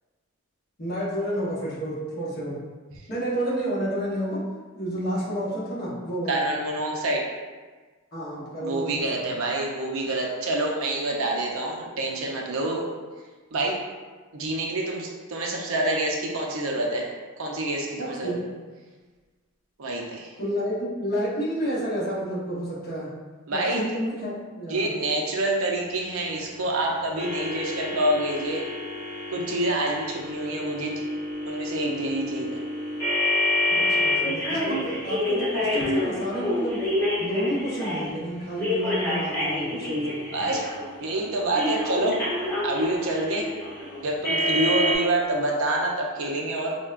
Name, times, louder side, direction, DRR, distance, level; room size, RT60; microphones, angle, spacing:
voice 1, 0.8-2.6 3.1-4.4 4.7-6.5 8.1-9.2 18.0-18.5 20.4-23.1 23.5-24.9 33.7-36.8 37.2-40.2, equal, 45° left, -8 dB, 0.9 m, -30 dB
voice 2, 6.3-7.3 8.6-12.9 13.5-13.8 14.3-17.1 17.4-18.4 19.8-20.3 23.5-23.9 24.7-28.6 29.3-31.0 31.5-32.6 40.3-40.6 41.0-42.2 42.6-43.5 44.0-46.7, right 2 dB, 70° right, -1 dB, 0.5 m, -27 dB
sound 1, 27.1-38.1 38.6-41.0 41.5-44.9, left 1 dB, 15° left, 1.1 m, -28 dB
4.4 x 2.1 x 2.4 m, 1.4 s
head